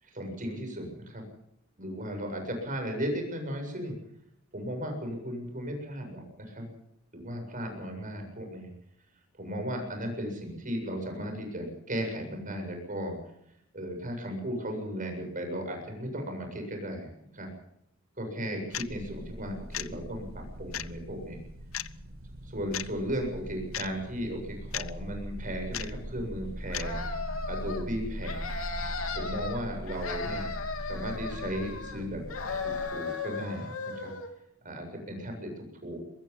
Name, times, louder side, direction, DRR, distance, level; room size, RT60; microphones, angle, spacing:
voice 1, 0.0-1.3 1.8-3.9 4.5-6.7 7.1-8.7 9.4-13.2 13.7-17.5 18.2-21.4 22.4-27.2 27.5-28.6 29.1-30.5 30.8-32.2 32.5-34.1 34.6-36.0, equal, 40° right, 4 dB, 7.9 m, -36 dB
sound 1, 18.7-18.8 19.7-19.9 20.7-20.9 21.7-21.9 22.7-22.9 23.7-23.9 24.7-24.9 25.7-25.9 26.7-26.9, left 12 dB, 70° left, 0.8 m, -34 dB
sound 2, 18.7-32.8, equal, 90° right, 6.4 m, -41 dB
sound 3, 26.7-27.8 28.2-29.6 29.9-32.0 32.3-34.3, left 4 dB, 90° left, 3.3 m, -36 dB
23.5 x 21.5 x 5.7 m, 0.76 s
head